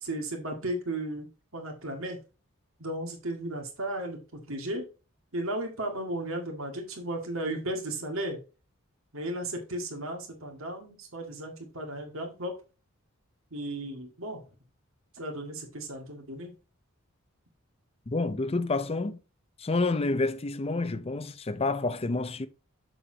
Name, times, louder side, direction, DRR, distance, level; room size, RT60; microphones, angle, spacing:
voice 1, 0.0-1.3 1.5-2.2 2.8-4.9 5.3-8.4 9.1-12.5 13.5-14.4 15.2-16.5, right 1 dB, 65° right, 2.0 m, -35 dB
voice 2, 18.1-19.2 19.6-22.5, left 3 dB, 30° left, 0.5 m, -29 dB
7.1 x 6.9 x 2.8 m
head